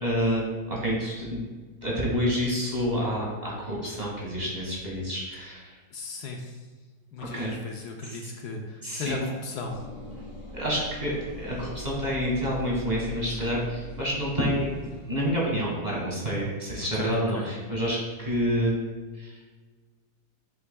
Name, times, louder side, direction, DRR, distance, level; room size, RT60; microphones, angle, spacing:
voice 1, 0.0-1.4 1.8-5.7 7.2-7.5 8.0-8.2 8.8-9.2 10.5-14.8 15.1-18.7 19.2-19.4, equal, 25° right, -5 dB, 1.6 m, -28 dB
voice 2, 5.9-6.7 7.1-9.8 16.9-17.5, left 3 dB, 70° left, 2 dB, 1.2 m, -36 dB
sound 1, 9.6-15.3, equal, 45° left, 2.5 m, -42 dB
7.1 x 6.9 x 2.2 m, 1.4 s
omnidirectional pair, 1.9 m